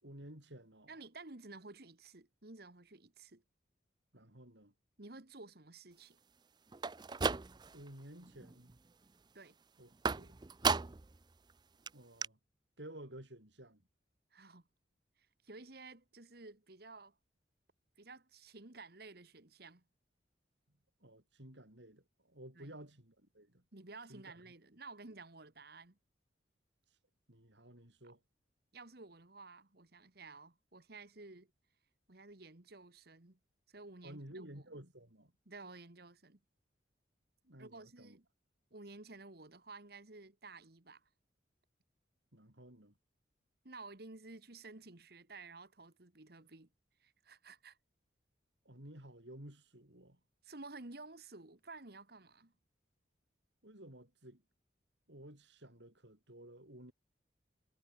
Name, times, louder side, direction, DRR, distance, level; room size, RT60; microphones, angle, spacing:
voice 1, 0.0-0.9 4.1-4.7 7.7-8.8 9.8-10.4 11.9-12.4 12.8-13.8 21.0-23.6 24.1-24.4 27.3-28.2 34.0-35.3 37.4-38.2 42.3-42.9 48.6-50.2 53.6-54.4 55.1-56.9, right 1 dB, 75° right, 6.2 m, -53 dB
voice 2, 0.9-3.4 5.0-6.2 9.3-9.6 14.3-14.6 15.4-17.1 18.0-19.8 22.5-22.8 23.7-26.0 28.0-28.2 28.7-31.5 32.1-33.4 33.7-34.5 35.4-36.4 37.6-38.2 38.7-41.0 43.6-46.7 47.0-47.8 50.4-52.5, right 3 dB, 55° right, 1.7 m, -53 dB
sound 1, 6.7-7.9 8.3-8.8 10.0-11.2 11.5-11.6 11.9-12.0 12.2-12.3, right 4 dB, 25° right, 0.5 m, -35 dB
head